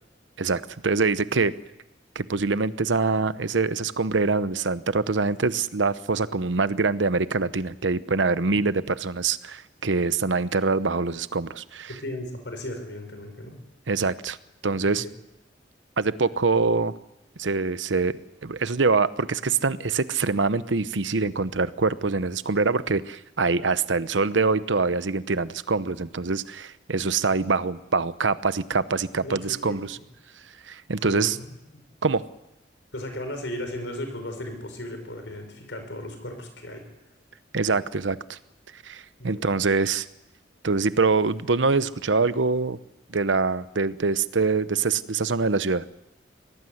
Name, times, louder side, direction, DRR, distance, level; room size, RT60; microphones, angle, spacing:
voice 1, 0.4-1.5 2.1-11.9 13.9-14.4 14.6-15.0 16.0-16.9 17.4-18.1 18.4-30.0 30.6-31.4 32.0-32.2 37.5-38.4 38.7-40.1 40.6-42.8 43.1-45.8, right 4 dB, 90° right, 14 dB, 0.9 m, -24 dB
voice 2, 11.9-13.6 14.8-15.1 16.1-16.2 29.2-29.8 31.0-31.3 32.9-36.9 39.2-39.5, left 1 dB, 75° left, 6 dB, 5.4 m, -36 dB
24.0 x 18.5 x 8.0 m, 0.89 s
head